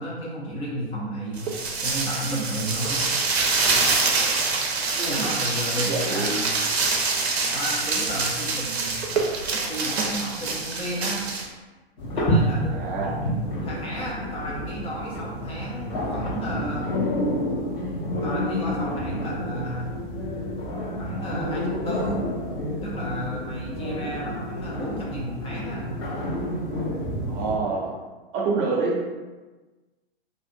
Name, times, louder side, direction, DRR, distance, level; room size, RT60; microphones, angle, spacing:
voice 1, 0.0-1.5 1.8-3.0 5.1-6.6 7.5-9.0 9.7-11.2 12.2-16.9 18.2-19.9 21.0-22.2 22.8-25.8, equal, 20° left, -5 dB, 0.5 m, -33 dB
sound 1, 1.4-11.5, right 4 dB, 75° right, 0.6 m, -25 dB
voice 2, 5.0-5.3 5.8-6.4 12.7-13.2 27.3-27.9 28.3-29.1, right 4 dB, 25° right, -2 dB, 0.5 m, -27 dB
sound 2, 12.0-27.6, equal, 50° left, 1.0 m, -29 dB
2.7 x 2.4 x 2.5 m, 1.2 s
figure-of-eight pair, 110°, 32 cm